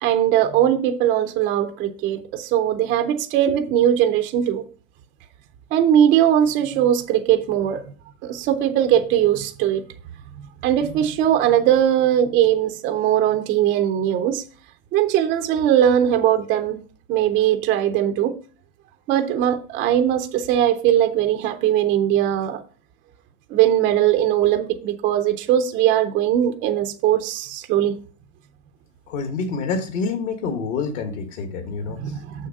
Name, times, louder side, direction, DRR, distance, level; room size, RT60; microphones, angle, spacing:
voice 1, 0.0-4.7 5.7-7.8 8.2-9.8 10.6-14.4 14.9-16.8 17.1-18.3 19.1-22.6 23.5-27.9 31.9-32.5, right 10 dB, 20° right, 0.4 m, -20 dB
voice 2, 29.1-32.0, left 4 dB, 60° left, 1.6 m, -27 dB
6.4 x 6.4 x 5.2 m
supercardioid pair, 145°, 43 cm